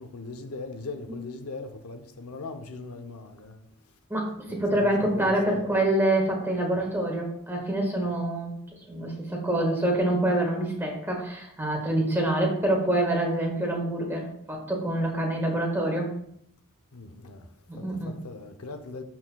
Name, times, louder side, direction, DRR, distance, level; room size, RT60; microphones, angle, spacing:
voice 1, 0.0-3.6 4.5-5.6 16.9-17.5 17.8-19.0, left 3 dB, 85° left, 0.7 m, -40 dB
voice 2, 4.1-8.5 8.9-16.1 17.7-18.2, right 1 dB, 10° right, 1.5 m, -26 dB
12.0 x 4.4 x 2.3 m
head